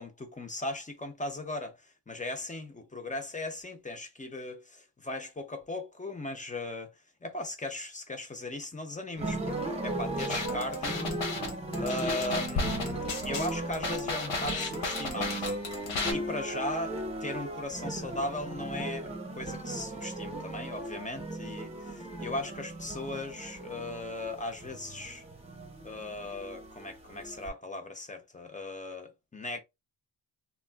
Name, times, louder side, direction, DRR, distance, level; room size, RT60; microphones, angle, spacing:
voice 1, 0.0-6.9 7.2-11.2 11.8-15.5 16.1-25.2 25.8-29.6, left 2 dB, 15° left, 0.5 m, -38 dB
sound 1, 9.2-27.5, right 2 dB, 15° right, 0.7 m, -37 dB
sound 2, 10.2-16.1, left 3 dB, 85° left, 0.9 m, -34 dB
sound 3, 12.6-16.9, left 3 dB, 65° left, 0.7 m, -41 dB
3.4 x 2.3 x 2.2 m
wide cardioid pair, 140°, 47 cm